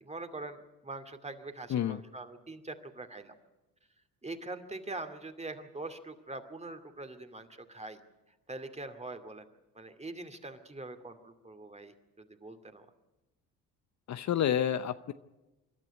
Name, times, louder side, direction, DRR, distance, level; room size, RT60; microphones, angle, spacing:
voice 1, 0.0-3.3 4.2-8.0 8.5-9.4 9.7-12.9, right 2 dB, 15° right, 8 dB, 2.4 m, -43 dB
voice 2, 1.7-2.0 14.1-15.1, left 10 dB, 45° left, 12 dB, 0.8 m, -29 dB
26.5 x 12.0 x 9.9 m, 1.0 s
hypercardioid pair, 60°, 38 cm